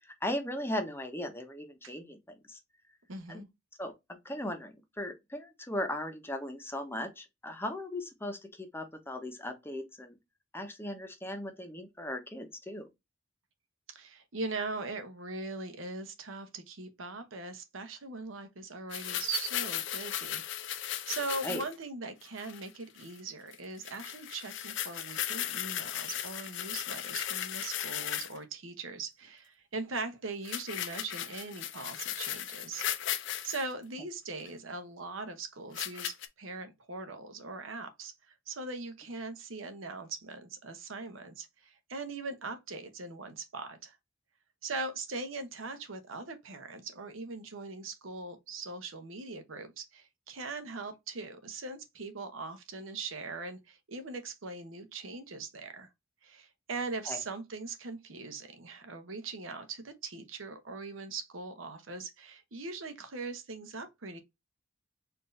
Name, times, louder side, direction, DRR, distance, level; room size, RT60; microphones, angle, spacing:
voice 1, 0.2-2.6 3.3-3.4 3.8-3.9 4.2-10.2 10.5-12.9 21.4-21.6 57.1-57.2, left 1 dB, 10° left, 0.8 m, -37 dB
voice 2, 3.1-3.5 13.9-32.9 33.4-44.0 44.6-55.9 56.2-64.2, right 3 dB, 75° right, 0.9 m, -40 dB
sound 1, 18.9-21.7 22.2-22.7 23.0-23.2 23.5-23.6 23.8-28.4 30.4-33.6 34.5-34.6 35.7-36.3, left 11 dB, 65° left, 0.6 m, -36 dB
4.4 x 2.6 x 3.1 m
head